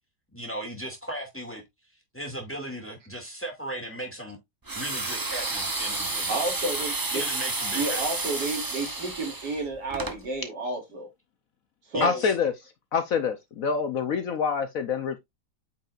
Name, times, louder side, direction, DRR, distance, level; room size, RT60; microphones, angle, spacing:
voice 1, 0.3-1.6 2.1-4.4 4.7-6.5 7.2-8.0 11.9-12.1, right 1 dB, 5° left, 2.1 m, -36 dB
sound 1, 4.7-10.2, right 3 dB, 25° right, 0.4 m, -31 dB
voice 2, 6.3-7.2 7.7-11.1 11.9-12.2, right 2 dB, 70° right, 3.1 m, -31 dB
voice 3, 12.0-12.5 12.9-15.2, left 6 dB, 60° left, 1.1 m, -26 dB
8.5 x 5.8 x 2.4 m
omnidirectional pair, 1.9 m